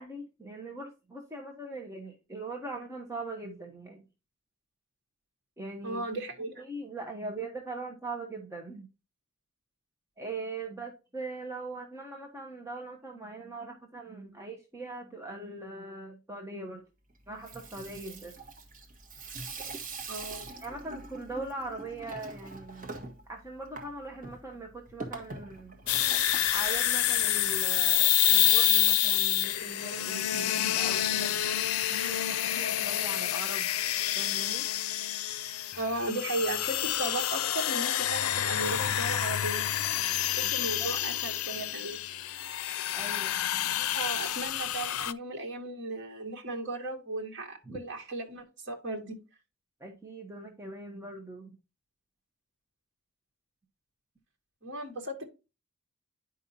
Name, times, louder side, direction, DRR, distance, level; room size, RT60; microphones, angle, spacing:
voice 1, 0.0-4.0 5.6-6.0 6.6-8.9 10.2-16.9 17.3-18.4 20.6-22.9 23.3-25.8 26.5-31.4 31.9-33.7 34.1-34.6 40.4-40.9 42.9-43.4 47.7-47.8 49.8-51.6, right 2 dB, 15° right, 1.1 m, -41 dB
voice 2, 5.8-6.6 20.1-20.5 35.8-39.6 40.3-42.0 43.8-49.2 54.6-55.3, right 2 dB, 55° right, 2.1 m, -36 dB
Water tap faucet / Sink (filling or washing), 17.3-27.5, right 3 dB, 40° right, 1.5 m, -44 dB
sound 1, 25.9-45.1, left 13 dB, 85° left, 0.5 m, -28 dB
9.9 x 5.5 x 2.7 m
head